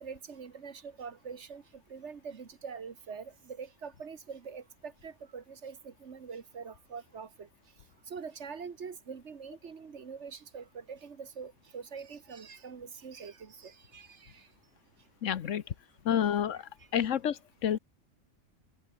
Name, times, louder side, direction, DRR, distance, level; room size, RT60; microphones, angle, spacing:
voice 1, 0.0-1.6 1.9-7.5 8.1-14.5 17.0-17.1, right 6 dB, 65° right, 1.7 m, -44 dB
voice 2, 15.2-15.6 16.0-16.6 16.9-17.8, left 9 dB, 80° left, 1.3 m, -29 dB
omnidirectional pair, 1.3 m